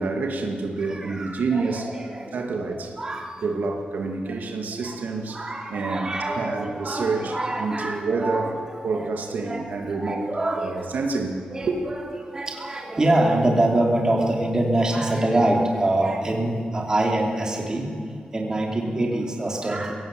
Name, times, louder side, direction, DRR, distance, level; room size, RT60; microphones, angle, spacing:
voice 1, 0.0-1.9 2.3-2.9 3.4-5.4 5.7-8.5 8.8-10.3 10.6-11.8, right 4 dB, 85° right, 2 dB, 2.6 m, -28 dB
voice 2, 0.8-2.4 2.7-3.4 4.3-4.4 4.7-5.0 5.3-8.5 8.8-9.1 9.4-9.6 9.9-10.9 11.5-17.9 18.3-19.9, right 1 dB, 25° right, 0 dB, 3.3 m, -25 dB
22.5 x 18.0 x 8.0 m, 2.2 s
wide cardioid pair, 150°, 3 cm